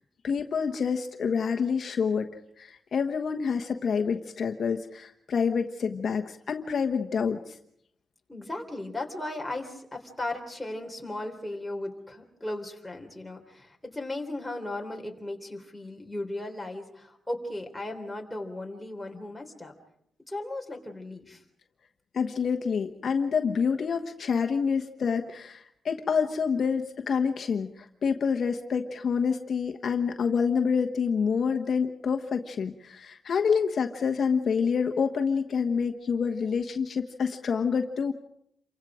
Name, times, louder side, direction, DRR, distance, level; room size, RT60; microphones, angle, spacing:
voice 1, 0.2-2.3 2.6-7.6 22.1-38.1, left 6 dB, 60° left, 5 dB, 1.2 m, -27 dB
voice 2, 8.3-19.7 20.3-21.4, left 1 dB, 5° left, 1 dB, 3.6 m, -36 dB
28.5 x 24.5 x 5.0 m, 0.71 s
wide cardioid pair, 135°, 0 cm